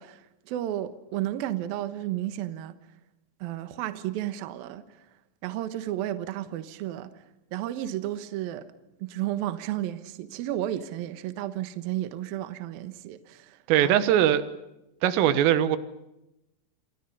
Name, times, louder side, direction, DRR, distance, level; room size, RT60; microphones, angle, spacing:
voice 1, 0.0-2.7 3.4-5.1 5.4-7.2 7.5-8.7 9.0-14.0, right 13 dB, 70° right, 2.4 m, -33 dB
voice 2, 13.7-14.4 15.0-15.8, right 11 dB, 90° right, 3.8 m, -21 dB
28.0 x 25.5 x 5.5 m
omnidirectional pair, 5.7 m